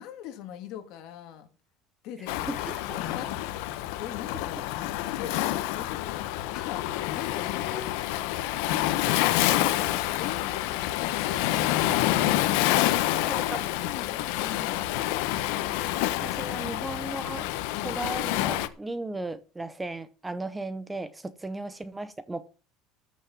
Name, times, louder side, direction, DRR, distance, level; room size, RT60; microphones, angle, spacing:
voice 1, 0.0-1.5 2.0-4.6 5.0-6.9 7.1-12.2 13.4-15.4 17.7-18.1, left 9 dB, 55° left, 2.7 m, -42 dB
Waves surf, 2.3-18.7, left 15 dB, 75° left, 1.1 m, -28 dB
voice 2, 2.5-2.8 13.0-13.6 15.7-15.9 16.2-17.5 17.8-22.5, right 2 dB, 10° right, 0.7 m, -36 dB
14.0 x 6.2 x 7.2 m
cardioid pair, 155°, 0 cm